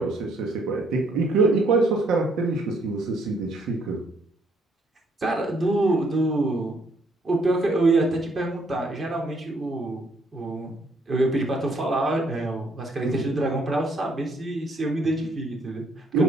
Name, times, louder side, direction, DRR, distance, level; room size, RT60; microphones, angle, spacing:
voice 1, 0.0-4.0 13.0-13.4 16.1-16.2, right 3 dB, 85° right, 1 dB, 1.7 m, -24 dB
voice 2, 5.2-6.8 7.2-10.1 10.3-10.7 11.1-16.2, right 2 dB, 35° right, 0 dB, 3.5 m, -25 dB
9.9 x 5.4 x 5.7 m, 0.62 s
cardioid pair, 90°, 0 cm